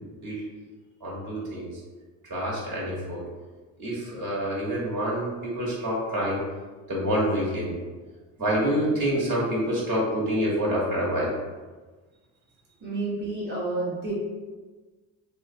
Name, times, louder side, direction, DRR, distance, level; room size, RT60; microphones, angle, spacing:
voice 1, 1.0-1.7 2.3-3.2 3.8-6.4 6.9-7.7 8.4-11.3, equal, 55° right, -6 dB, 1.1 m, -27 dB
voice 2, 12.8-14.1, right 3 dB, 30° right, -7 dB, 0.9 m, -30 dB
2.6 x 2.1 x 2.6 m, 1.3 s
supercardioid pair, 90°, 38 cm